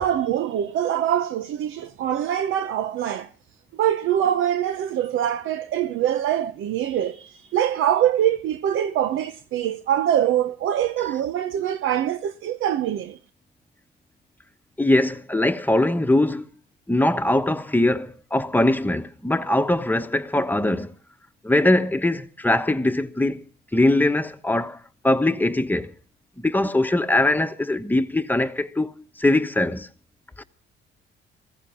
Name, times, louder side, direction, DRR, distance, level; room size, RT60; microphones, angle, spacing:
voice 1, 0.0-3.3 3.8-13.2, right 10 dB, 80° right, 0.9 m, -24 dB
voice 2, 14.8-16.4 16.9-20.9 21.4-23.4 23.7-24.8 25.0-25.9 26.4-29.9 30.4-30.5, left 1 dB, 10° left, 1.2 m, -21 dB
16.0 x 15.0 x 5.7 m
cardioid pair, 90°, 20 cm